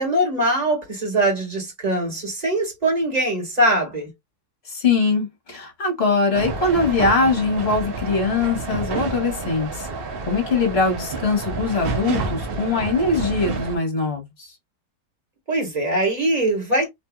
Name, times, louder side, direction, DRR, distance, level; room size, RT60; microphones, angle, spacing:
voice 1, 0.0-4.1 15.5-16.9, right 1 dB, 25° right, 1.5 m, -22 dB
voice 2, 4.7-9.9 10.3-14.5, left 3 dB, 40° left, 1.4 m, -22 dB
sound 1, 6.3-13.8, right 4 dB, 75° right, 0.5 m, -29 dB
3.1 x 2.6 x 2.3 m
omnidirectional pair, 1.9 m